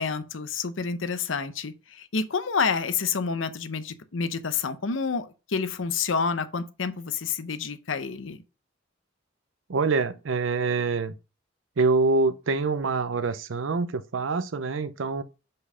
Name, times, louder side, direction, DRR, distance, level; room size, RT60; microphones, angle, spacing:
voice 1, 0.0-8.4, left 5 dB, 90° left, 0.8 m, -29 dB
voice 2, 9.7-11.1 11.8-15.2, right 3 dB, 90° right, 0.6 m, -25 dB
5.3 x 4.2 x 5.5 m
head